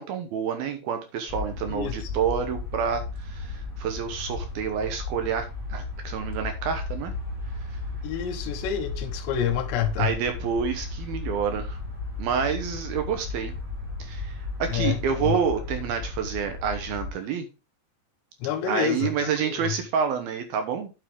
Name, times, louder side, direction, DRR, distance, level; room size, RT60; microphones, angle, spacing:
voice 1, 0.0-7.1 7.7-7.8 10.0-11.8 12.2-13.5 14.0-17.5 18.7-20.9, right 7 dB, 70° right, 2.6 m, -28 dB
sound 1, 1.3-17.1, left 3 dB, 5° right, 4.8 m, -35 dB
voice 2, 1.7-2.1 8.0-10.1 14.7-15.4 18.4-19.8, left 9 dB, 75° left, 3.1 m, -28 dB
9.0 x 7.5 x 3.6 m
omnidirectional pair, 5.3 m